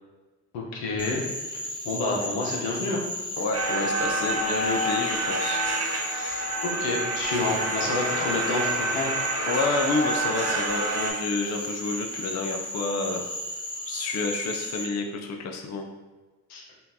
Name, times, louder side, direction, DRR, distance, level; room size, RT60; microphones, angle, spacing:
voice 1, 0.5-1.2 1.5-3.0 6.1-9.1 16.5-16.6, left 3 dB, 80° left, -1 dB, 1.0 m, -29 dB
Frog, 1.0-14.8, left 1 dB, 10° left, 1.4 m, -35 dB
voice 2, 3.4-5.7 9.4-13.2 13.9-15.8, left 3 dB, 45° left, 3 dB, 0.6 m, -29 dB
sound 1, 3.5-11.1, right 2 dB, 40° right, 1.2 m, -28 dB
5.5 x 2.6 x 2.7 m, 1.3 s
supercardioid pair, 65°, 39 cm